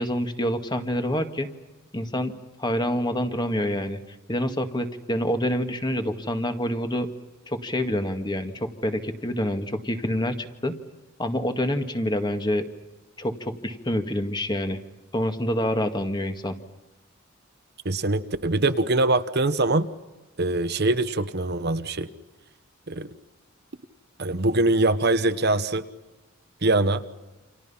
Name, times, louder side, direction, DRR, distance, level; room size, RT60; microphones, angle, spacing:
voice 1, 0.0-1.5 1.9-2.3 2.6-4.0 4.3-7.1 7.5-10.7 11.2-12.6 13.2-14.8 15.1-16.6, equal, 20° left, 6 dB, 1.9 m, -27 dB
voice 2, 17.8-19.9 20.4-22.1 22.9-23.1 24.2-25.8 26.6-27.0, right 2 dB, 55° right, 11 dB, 1.1 m, -23 dB
29.5 x 27.5 x 5.7 m, 1.1 s
head